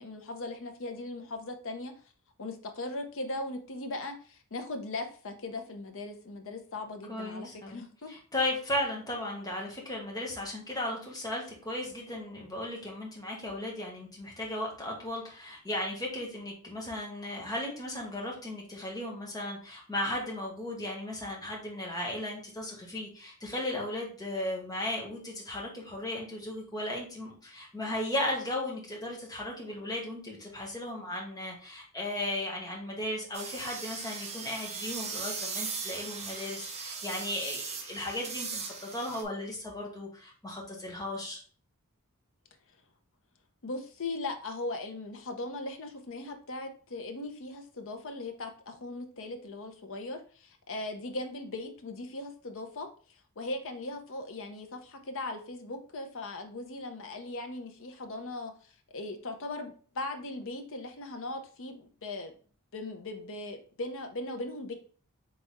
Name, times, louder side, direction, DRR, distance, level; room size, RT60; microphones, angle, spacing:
voice 1, 0.0-1.9 2.4-8.1 43.6-52.9 53.4-58.5 58.9-62.3 62.7-64.7, left 2 dB, 60° left, 6 dB, 0.7 m, -39 dB
voice 2, 7.1-7.8 8.1-41.4, left 1 dB, 15° left, -2 dB, 1.3 m, -36 dB
sound 1, 33.3-39.2, right 5 dB, 30° right, 0.7 m, -38 dB
4.1 x 3.4 x 3.5 m, 0.41 s
head